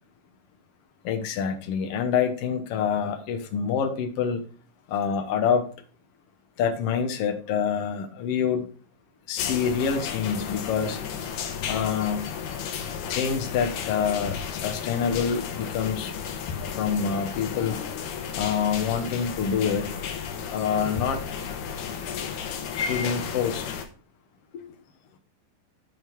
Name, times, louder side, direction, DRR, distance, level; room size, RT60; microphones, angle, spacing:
voice 1, 1.0-4.4 4.9-5.7 6.6-8.7 9.3-11.0 11.7-12.3 13.1-16.1 16.7-17.8 18.3-19.9 20.5-21.2 22.8-23.7 24.5-24.6, left 7 dB, 60° left, 5 dB, 1.8 m, -26 dB
sound 1, 9.4-23.8, left 7 dB, 80° left, 2.6 m, -33 dB
9.7 x 5.4 x 4.6 m, 0.41 s
omnidirectional pair, 3.8 m